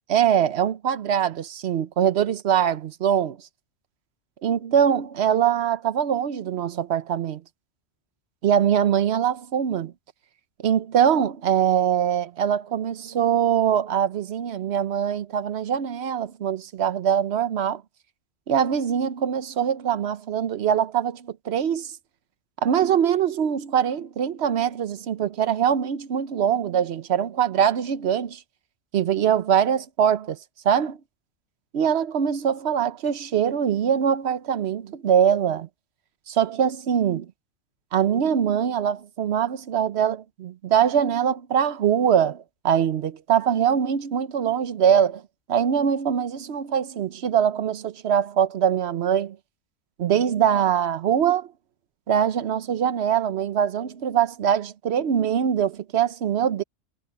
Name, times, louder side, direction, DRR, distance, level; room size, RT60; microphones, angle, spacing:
voice 1, 0.1-3.4 4.4-7.4 8.4-9.9 10.6-17.8 18.5-22.0 22.6-28.4 28.9-30.4 30.6-31.0 31.7-35.7 36.3-37.3 37.9-45.2 45.5-49.4 50.0-51.5 52.1-56.6, right 8 dB, 60° right, 1.0 m, -23 dB
omnidirectional pair, 1.3 m